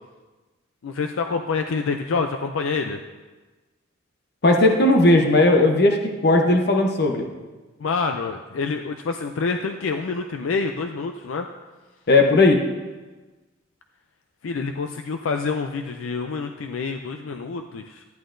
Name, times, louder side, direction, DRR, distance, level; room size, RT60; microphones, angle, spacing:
voice 1, 0.8-3.0 7.8-11.5 14.4-18.0, left 4 dB, 80° left, 6 dB, 0.4 m, -27 dB
voice 2, 4.4-6.0 6.2-7.2 12.1-12.6, left 2 dB, 55° left, 2 dB, 0.8 m, -16 dB
11.0 x 10.5 x 2.6 m, 1.3 s
head